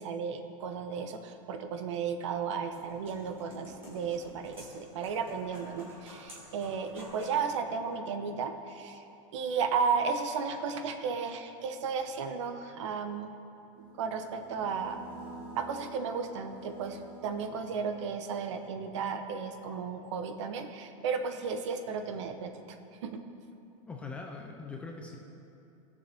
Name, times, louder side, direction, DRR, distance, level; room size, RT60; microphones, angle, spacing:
voice 1, 0.0-9.0 9.3-13.4 14.0-15.0 15.5-22.8 23.0-23.2, right 5 dB, 60° right, 7 dB, 0.9 m, -34 dB
sound 1, 2.4-7.4, equal, 15° right, 2.3 m, -51 dB
sound 2, 13.7-18.4, right 3 dB, 30° right, 1.4 m, -49 dB
voice 2, 23.9-25.2, left 4 dB, 5° left, 0 dB, 0.3 m, -41 dB
18.0 x 7.0 x 3.4 m, 2.8 s
supercardioid pair, 175°, 17 cm